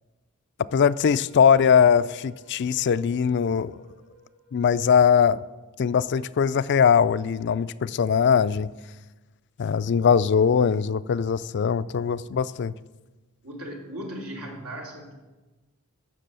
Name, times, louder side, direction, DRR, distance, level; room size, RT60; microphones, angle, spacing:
voice 1, 0.7-3.8 4.5-5.4 5.8-8.7 9.6-12.7, left 7 dB, 50° left, 0.4 m, -21 dB
sound 1, 0.9-5.2, equal, 60° right, 4.2 m, -55 dB
voice 2, 13.4-15.1, equal, 85° right, 2.8 m, -37 dB
15.0 x 6.3 x 6.8 m
head